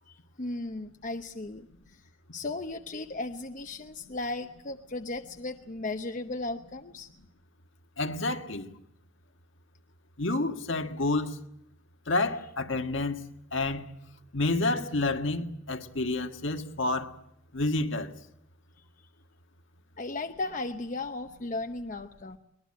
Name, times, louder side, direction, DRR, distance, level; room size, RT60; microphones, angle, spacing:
voice 1, 0.1-2.0 2.3-7.1 20.0-22.4, left 2 dB, 40° left, 0.8 m, -36 dB
voice 2, 8.0-8.7 10.2-11.3 12.1-13.2 13.5-13.8 14.3-17.1 17.5-18.1, left 2 dB, 65° left, 1.6 m, -29 dB
22.5 x 20.5 x 8.7 m
head